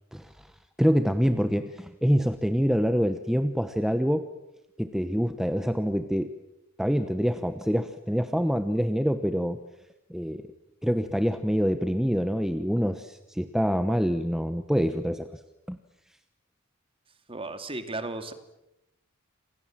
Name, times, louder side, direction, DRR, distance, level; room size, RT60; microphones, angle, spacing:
voice 1, 0.8-4.3 4.8-6.3 6.8-9.6 10.1-10.5 10.8-15.4 15.7-15.8, equal, ahead, 9 dB, 1.0 m, -26 dB
voice 2, 17.3-18.3, right 2 dB, 25° right, 8 dB, 2.3 m, -34 dB
29.0 x 26.0 x 7.5 m, 0.91 s
head